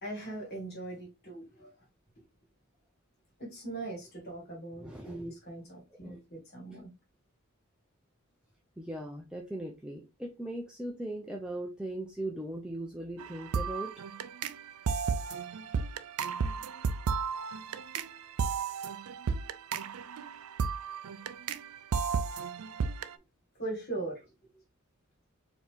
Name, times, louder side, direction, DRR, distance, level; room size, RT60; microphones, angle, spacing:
voice 1, 0.0-1.7 3.4-6.9 23.6-24.2 24.5-24.6, right 2 dB, 45° left, 2.1 m, -40 dB
voice 2, 4.8-5.3 6.0-6.2 8.8-13.9, right 1 dB, 5° right, 0.5 m, -39 dB
sound 1, 13.2-23.1, right 5 dB, 80° right, 0.4 m, -33 dB
4.6 x 2.9 x 3.3 m
head